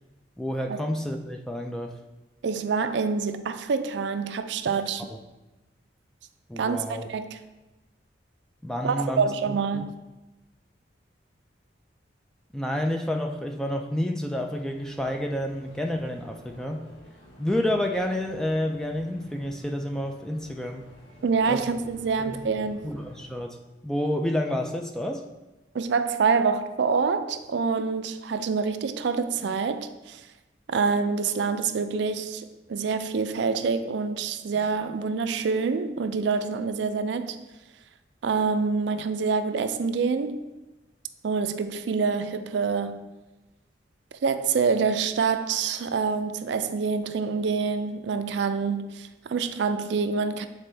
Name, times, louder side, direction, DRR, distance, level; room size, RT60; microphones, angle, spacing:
voice 1, 0.4-1.9 6.5-7.0 8.6-9.9 12.5-16.8 17.4-20.9 21.5-21.6 22.3-22.5 22.8-23.6 23.8-25.2, left 1 dB, 5° left, 0.3 m, -29 dB
voice 2, 2.4-5.1 6.6-7.4 8.8-9.9 21.2-22.9 25.7-30.2 30.7-37.4 38.2-40.4 41.2-43.0 44.2-50.5, right 5 dB, 70° right, 0.4 m, -26 dB
sound 1, 14.5-23.3, equal, 90° left, 1.1 m, -51 dB
7.7 x 4.1 x 3.3 m
head